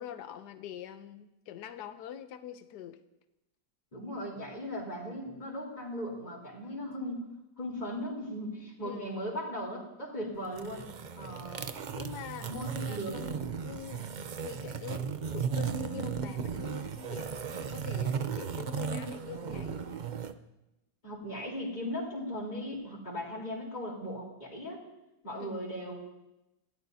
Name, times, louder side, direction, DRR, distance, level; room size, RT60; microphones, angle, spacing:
voice 1, 0.0-3.0 8.8-9.2 11.9-13.3 13.6-14.0 14.4-20.0 25.4-25.7, left 9 dB, 80° left, 9 dB, 1.4 m, -44 dB
voice 2, 3.9-7.3 7.6-10.8 11.2-11.6 12.4-13.2 21.0-24.8 25.2-25.9, equal, 25° left, -4 dB, 3.9 m, -38 dB
sound 1, 10.4-20.3, right 6 dB, 65° right, 0.4 m, -36 dB
28.5 x 17.0 x 2.8 m, 0.94 s
omnidirectional pair, 1.8 m